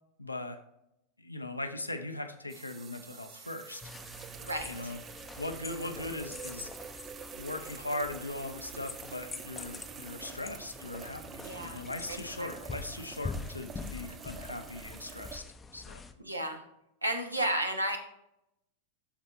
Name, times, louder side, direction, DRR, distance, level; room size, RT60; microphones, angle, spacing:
voice 1, 0.2-0.6 1.2-3.8 4.7-5.0 5.4-6.7 7.3-15.4 15.7-16.0, left 2 dB, 85° left, 6 dB, 0.7 m, -39 dB
sound 1, 2.5-15.4, right 8 dB, 25° right, 0.4 m, -47 dB
sound 2, 3.8-16.1, left 4 dB, 15° left, 0.6 m, -45 dB
voice 2, 4.4-4.9 11.4-11.8 12.1-12.5 16.2-16.6 17.0-18.0, right 1 dB, 85° right, 5 dB, 1.0 m, -33 dB
13.0 x 4.3 x 2.7 m, 0.82 s
figure-of-eight pair, 90°, 0 cm